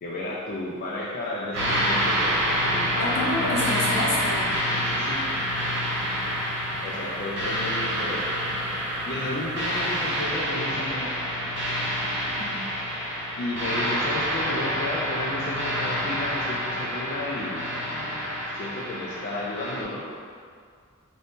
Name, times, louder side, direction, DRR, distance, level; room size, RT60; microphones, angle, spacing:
voice 1, 0.0-3.9 4.8-5.3 6.8-8.3 9.1-11.1 13.4-20.0, left 1 dB, 40° left, -5 dB, 0.3 m, -33 dB
sound 1, 1.5-19.8, equal, 55° right, 0.7 m, -27 dB
voice 2, 3.0-4.5 12.4-12.6, left 2 dB, 75° left, -4 dB, 0.7 m, -28 dB
2.6 x 2.5 x 3.5 m, 2.1 s
head